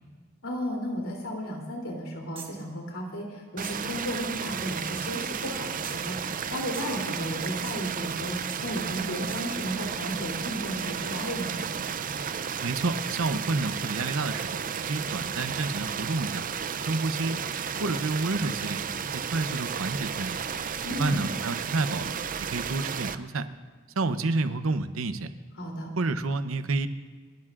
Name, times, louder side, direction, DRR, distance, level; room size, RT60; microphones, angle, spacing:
voice 1, 0.4-11.6 20.8-21.2 25.6-25.9, equal, 75° left, 0 dB, 3.2 m, -34 dB
sound 1, 2.3-2.7 3.6-3.9 4.9-5.2 5.8-6.5 6.7-7.1 7.6-8.0 8.5-8.7 9.3-9.5, right 5 dB, 25° right, 1.5 m, -45 dB
sound 2, 3.6-23.1, right 7 dB, 40° right, 0.5 m, -33 dB
voice 2, 12.6-16.4 16.9-17.4 17.8-20.4 21.0-23.5 24.0-25.3 26.0-26.9, right 3 dB, 75° right, 10 dB, 0.8 m, -29 dB
29.0 x 12.0 x 2.5 m, 1.5 s
head